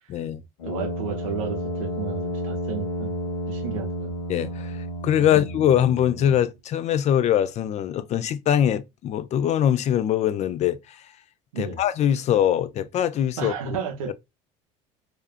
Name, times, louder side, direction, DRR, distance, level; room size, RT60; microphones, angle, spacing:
voice 1, 0.1-0.4 4.3-11.1 11.6-13.5 14.1-14.2, left 10 dB, 45° left, 0.4 m, -23 dB
Brass instrument, 0.6-6.5, equal, 90° left, 0.8 m, -31 dB
voice 2, 0.6-3.2 3.5-4.1 5.2-5.4 11.5-11.8 13.4-14.1, right 7 dB, 90° right, 0.7 m, -33 dB
2.6 x 2.4 x 2.3 m
hypercardioid pair, 80°, 17 cm